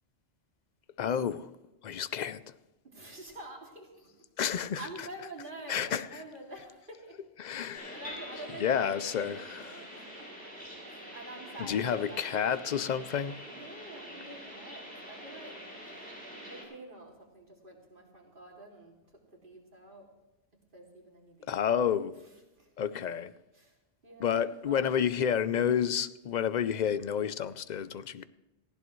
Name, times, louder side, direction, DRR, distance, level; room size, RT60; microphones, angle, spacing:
voice 1, 1.0-1.5 1.8-2.4 4.4-4.8 5.7-6.2 7.4-8.0 8.6-9.7 11.6-13.4 21.5-22.2 22.8-23.3 24.2-28.2, left 8 dB, 55° left, 0.5 m, -30 dB
voice 2, 2.8-7.2 7.5-10.3 10.9-12.9 13.4-15.6 16.4-19.0 19.3-20.1 20.7-21.7 22.2-22.7 23.5-23.8 24.0-24.9, right 1 dB, 45° right, 2.8 m, -48 dB
sound 1, 7.7-16.6, equal, 5° left, 6.2 m, -45 dB
18.5 x 15.5 x 3.1 m
omnidirectional pair, 1.2 m